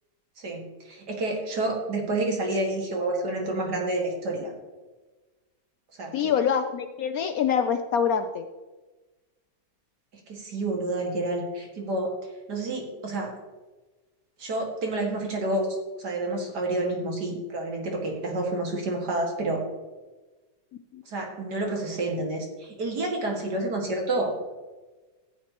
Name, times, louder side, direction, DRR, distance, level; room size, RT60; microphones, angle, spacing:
voice 1, 0.4-4.5 6.0-6.3 10.3-12.1 12.5-13.3 14.4-19.6 21.1-24.4, right 2 dB, 70° right, 0 dB, 2.5 m, -29 dB
voice 2, 6.1-8.5 20.9-21.0, left 7 dB, 70° left, 8 dB, 0.9 m, -25 dB
14.5 x 8.2 x 2.9 m, 1.2 s
omnidirectional pair, 1.9 m